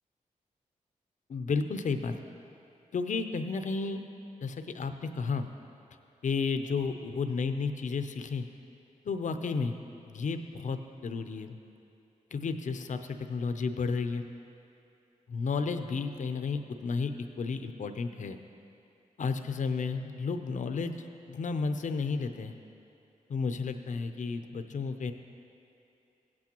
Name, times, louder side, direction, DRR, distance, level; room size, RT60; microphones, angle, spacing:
voice 1, 1.3-2.2 2.9-4.0 4.4-5.5 6.2-8.5 9.0-9.8 10.1-11.6 12.3-14.2 15.3-18.4 19.2-20.9 21.3-22.5 23.3-25.1, left 4 dB, 65° left, 8 dB, 0.6 m, -32 dB
16.0 x 8.4 x 3.0 m, 2.7 s
cardioid pair, 60°, 14 cm